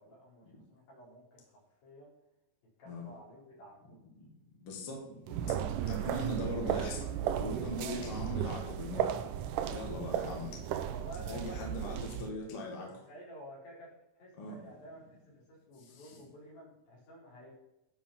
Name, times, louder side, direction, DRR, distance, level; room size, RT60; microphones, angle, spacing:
voice 1, 0.0-1.4 1.8-2.1 2.8-4.0 5.5-6.1 7.4-8.1 9.7-10.4 10.9-12.0 13.0-17.5, equal, 75° left, -5 dB, 5.8 m, -52 dB
voice 2, 4.6-5.1 5.4-5.6 5.9-7.1 7.4-9.2 9.7-10.6 11.3-12.9 14.4-14.6 16.0-16.2, left 1 dB, 40° left, -1 dB, 2.8 m, -40 dB
sound 1, 5.3-12.3, right 10 dB, 75° right, 2.0 m, -35 dB
12.0 x 5.6 x 5.8 m, 0.89 s
omnidirectional pair, 4.2 m